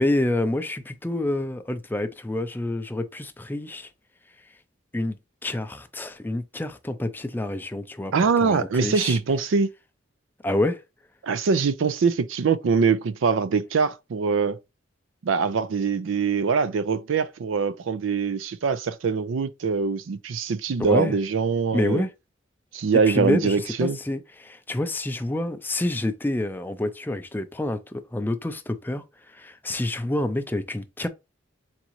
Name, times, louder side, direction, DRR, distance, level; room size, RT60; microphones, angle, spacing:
voice 1, 0.0-3.9 4.9-9.2 10.4-10.8 20.9-21.1 21.7-22.1 23.1-29.0 29.3-31.1, left 1 dB, 10° left, 0.4 m, -28 dB
voice 2, 8.1-9.7 11.2-14.6 15.2-22.0 22.7-24.0, right 5 dB, 75° right, 0.4 m, -23 dB
4.0 x 3.7 x 3.0 m
head